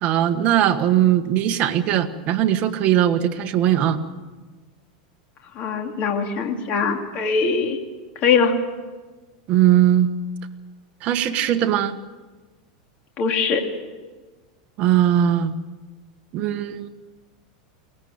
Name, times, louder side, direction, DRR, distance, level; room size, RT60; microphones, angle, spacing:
voice 1, 0.0-4.0 9.5-10.1 11.0-12.0 14.8-15.5 16.3-16.9, right 11 dB, 35° right, 7 dB, 1.5 m, -19 dB
voice 2, 5.6-7.8 8.2-8.5 13.2-13.6, left 5 dB, 35° left, 3 dB, 2.5 m, -21 dB
22.5 x 19.0 x 8.8 m, 1.3 s
supercardioid pair, 160°, 4 cm